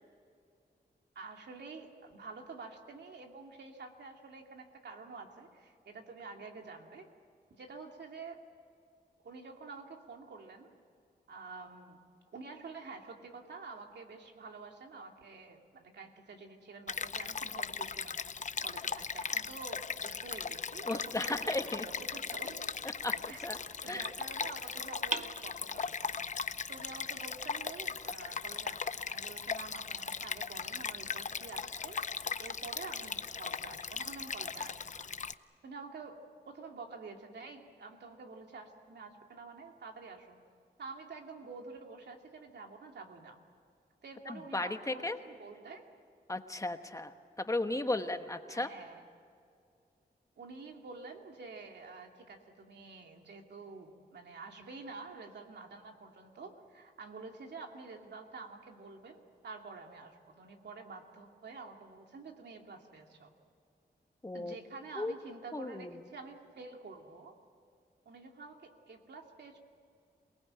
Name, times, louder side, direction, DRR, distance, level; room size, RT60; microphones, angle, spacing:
voice 1, 1.1-7.1 7.5-8.4 9.2-10.8 11.3-12.0 12.3-18.2 18.6-22.7 23.3-23.4 23.8-26.3 26.7-32.0 32.4-35.1 35.6-40.4 40.8-43.4 44.0-45.9 48.5-49.0 50.4-63.3 64.3-67.4 68.1-69.6, right 4 dB, 80° right, 3 dB, 2.6 m, -48 dB
Stream, 16.9-35.3, left 5 dB, 45° left, 0.6 m, -38 dB
voice 2, 20.8-21.8 23.0-23.6 23.9-24.1 44.3-45.2 46.3-47.1 47.4-48.7 64.2-64.6 65.0-65.1 65.5-66.0, left 2 dB, 20° left, 7 dB, 1.2 m, -35 dB
repinique-rod, 22.4-23.6 25.1-26.1, right 3 dB, 45° right, 1.2 m, -42 dB
28.0 x 19.5 x 8.9 m, 2.4 s
wide cardioid pair, 115°, 17 cm